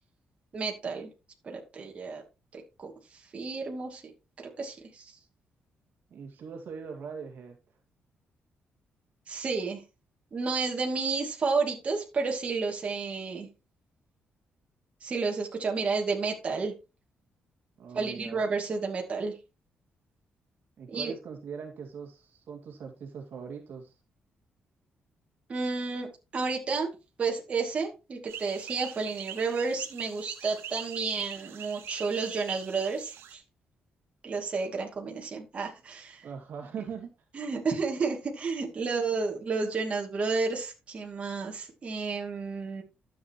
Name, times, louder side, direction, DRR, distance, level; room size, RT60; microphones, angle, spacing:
voice 1, 0.5-1.1 1.4-2.2 2.5-2.9 3.3-4.0 4.6-5.1 9.3-9.8 10.3-13.5 15.0-16.7 17.9-19.4 20.9-21.1 25.5-26.9 27.2-33.4 34.2-36.3 37.3-42.8, right 4 dB, 30° right, 0 dB, 2.5 m, -31 dB
voice 2, 6.1-7.6 17.8-18.4 20.8-23.9 36.2-37.1, right 6 dB, 55° right, 3 dB, 2.3 m, -41 dB
sound 1, 28.3-33.3, right 10 dB, 90° right, 1.2 m, -43 dB
12.5 x 8.0 x 3.0 m, 0.28 s
wide cardioid pair, 175°, 4 cm